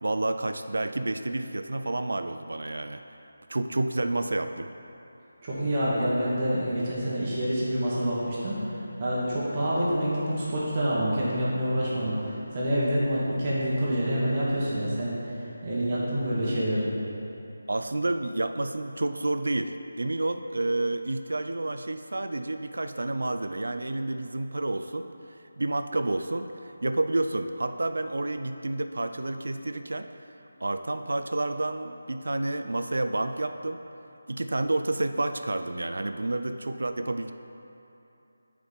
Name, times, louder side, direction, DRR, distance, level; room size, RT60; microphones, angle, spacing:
voice 1, 0.0-3.0 3.5-4.7 17.7-25.1 25.6-26.5 26.8-30.1 30.6-33.8 34.3-37.3, right 2 dB, 75° right, 8 dB, 0.3 m, -29 dB
voice 2, 5.4-16.9, equal, 35° right, -8 dB, 1.5 m, -27 dB
6.4 x 4.9 x 5.1 m, 2.9 s
figure-of-eight pair, 160°, 0 cm